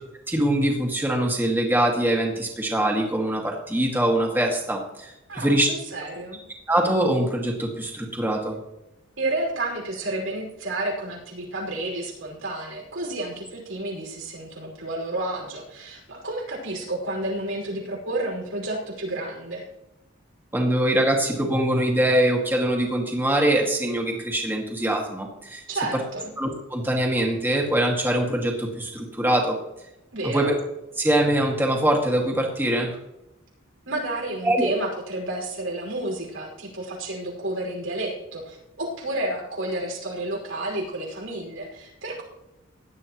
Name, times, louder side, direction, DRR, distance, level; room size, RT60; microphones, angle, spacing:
voice 1, 0.3-5.7 6.7-8.6 20.5-25.6 26.4-29.6 30.3-30.5 31.0-32.9 34.4-34.7, right 1 dB, 10° right, 0 dB, 2.0 m, -23 dB
voice 2, 5.3-6.4 9.2-19.6 25.7-26.3 30.1-30.6 33.9-42.2, right 1 dB, 80° right, -1 dB, 5.4 m, -31 dB
17.5 x 11.5 x 3.1 m, 0.89 s
head